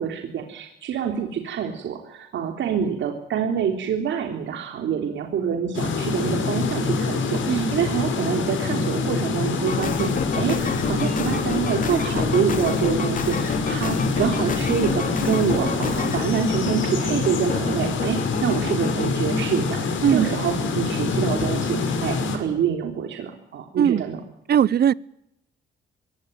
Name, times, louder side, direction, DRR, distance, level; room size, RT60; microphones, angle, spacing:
voice 1, 0.0-24.2, right 8 dB, 70° right, 4 dB, 3.4 m, -26 dB
sound 1, 5.7-22.4, left 4 dB, 75° left, 5.6 m, -25 dB
sound 2, 9.7-19.1, left 5 dB, 45° left, 2.6 m, -30 dB
voice 2, 24.5-24.9, right 9 dB, 55° right, 22 dB, 0.8 m, -19 dB
22.5 x 18.0 x 9.2 m, 0.81 s
cardioid pair, 90°, 20 cm